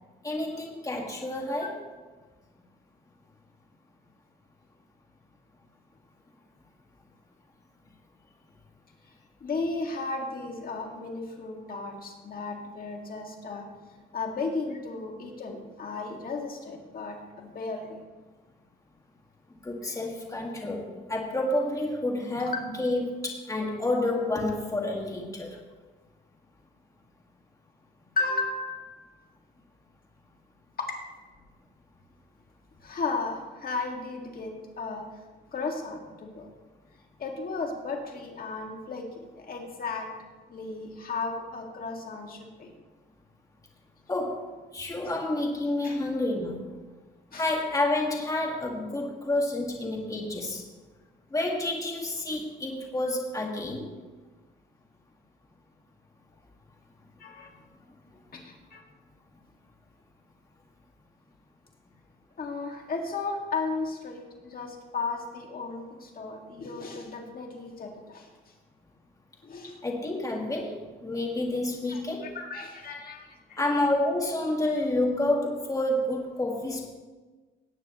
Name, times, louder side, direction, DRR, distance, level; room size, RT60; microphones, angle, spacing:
voice 1, 0.2-1.8 19.6-25.6 44.1-44.5 44.7-46.6 47.4-50.6 51.3-53.9 69.8-72.3 73.6-76.9, left 1 dB, 15° left, 0 dB, 1.8 m, -29 dB
voice 2, 9.4-13.7 14.1-18.0 19.9-20.0 22.3-22.7 28.2-29.0 30.8-31.0 32.8-35.0 35.5-36.5 37.2-40.1 40.5-42.7 45.0-45.2 45.8-46.0 47.3-47.5 57.2-57.5 58.3-58.8 62.4-68.3 69.4-69.8 71.9-73.6, left 3 dB, 45° left, 1 dB, 2.0 m, -35 dB
18.0 x 9.4 x 3.0 m, 1.3 s
cardioid pair, 90°, 20 cm